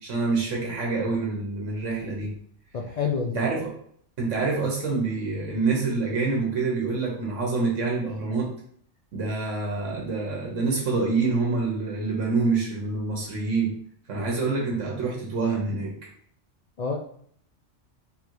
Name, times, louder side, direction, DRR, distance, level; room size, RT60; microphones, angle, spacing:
voice 1, 0.0-2.3 3.3-3.7 4.2-8.5 9.1-13.7 14.1-15.9, right 3 dB, 90° right, -2 dB, 1.3 m, -26 dB
voice 2, 2.7-3.4 16.8-17.0, left 5 dB, 80° left, 0 dB, 0.3 m, -27 dB
3.4 x 2.5 x 4.5 m, 0.63 s
omnidirectional pair, 1.2 m